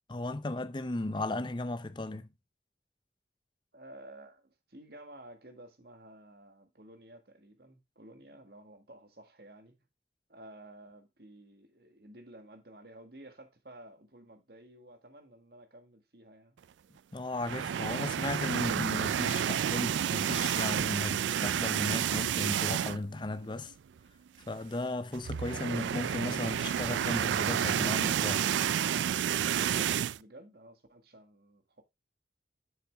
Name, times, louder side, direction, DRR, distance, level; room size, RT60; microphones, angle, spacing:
voice 1, 0.1-2.3 17.1-23.7 24.5-28.5, left 2 dB, 25° left, 0.6 m, -36 dB
voice 2, 3.7-9.7 10.3-16.6 29.5-31.8, right 1 dB, 60° right, 1.7 m, -53 dB
sound 1, 17.4-23.2 23.5-23.7 24.0-24.1 25.1-30.2, right 9 dB, 85° right, 0.3 m, -30 dB
7.3 x 7.0 x 3.4 m
head